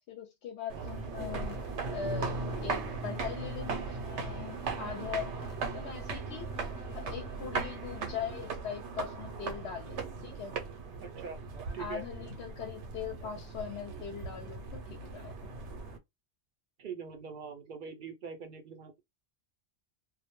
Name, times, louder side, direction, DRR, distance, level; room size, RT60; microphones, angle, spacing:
voice 1, 0.1-1.6 1.9-6.7 6.9-10.5 11.8-15.5, left 7 dB, 75° left, 0.8 m, -41 dB
sound 1, 0.7-16.0, right 4 dB, 80° right, 0.9 m, -38 dB
sound 2, 1.3-8.5, equal, 25° left, 0.5 m, -52 dB
voice 2, 11.0-11.4 11.7-12.0 16.8-19.0, right 6 dB, 60° right, 0.6 m, -43 dB
2.2 x 2.1 x 2.9 m
omnidirectional pair, 1.2 m